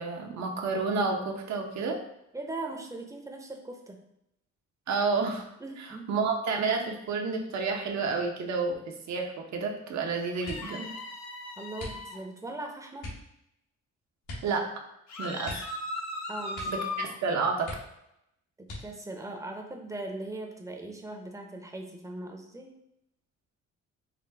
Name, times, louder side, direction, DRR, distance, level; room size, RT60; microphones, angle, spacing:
voice 1, 0.0-2.0 4.9-5.5 6.1-8.8 9.1-10.9 14.4-14.6 15.2-15.5 16.7-17.7, right 4 dB, 65° right, 2 dB, 0.8 m, -30 dB
voice 2, 2.3-4.0 5.6-6.2 11.6-13.1 16.3-17.1 18.6-22.7, right 2 dB, 10° right, 2 dB, 0.7 m, -40 dB
sound 1, 10.4-10.8 11.7-12.4 13.0-13.3 14.2-14.6 14.8-14.9 15.4-16.2 16.5-16.9 17.2-17.3 17.6-18.2 18.6-19.2 19.9-20.5 20.9-21.3, left 1 dB, 80° left, 1.5 m, -42 dB
sound 2, 10.4-12.2 15.1-17.2, left 2 dB, 60° left, 0.8 m, -37 dB
5.0 x 2.2 x 3.4 m, 0.80 s
cardioid pair, 90°, 30 cm